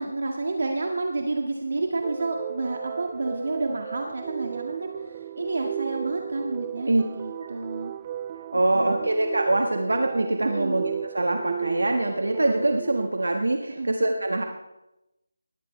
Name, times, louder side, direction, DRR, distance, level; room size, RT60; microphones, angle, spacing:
voice 1, 0.0-4.9 5.4-7.9 8.7-9.0 10.4-10.8 13.7-13.9, right 3 dB, 60° right, 2 dB, 1.9 m, -30 dB
sound 1, 2.0-13.1, right 10 dB, 20° right, 0.4 m, -36 dB
voice 2, 8.5-14.4, right 2 dB, 85° right, 4 dB, 1.5 m, -24 dB
19.5 x 14.5 x 3.3 m, 0.93 s
figure-of-eight pair, 170°, 0 cm